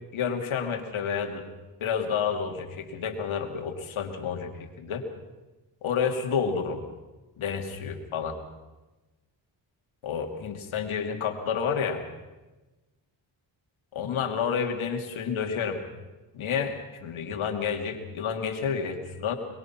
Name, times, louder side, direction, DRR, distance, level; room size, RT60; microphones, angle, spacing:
voice 1, 0.1-1.4 1.8-5.0 5.8-6.8 7.4-8.4 10.0-12.0 13.9-15.8 16.3-19.4, left 6 dB, 80° left, 5 dB, 2.7 m, -30 dB
23.0 x 22.5 x 6.0 m, 1.1 s
cardioid pair, 65°, 47 cm